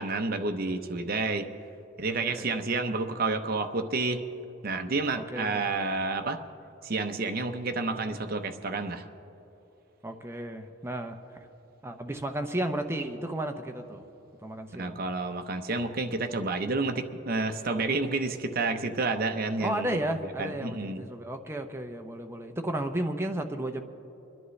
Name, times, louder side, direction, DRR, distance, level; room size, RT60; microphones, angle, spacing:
voice 1, 0.0-1.5 2.0-4.3 4.6-6.4 6.8-9.1 14.8-21.1, right 3 dB, 50° right, 6 dB, 0.8 m, -30 dB
voice 2, 5.3-5.6 10.0-11.2 11.8-14.0 14.4-15.0 19.6-23.8, right 1 dB, 15° right, 5 dB, 0.7 m, -33 dB
30.0 x 10.5 x 3.2 m, 3.0 s
head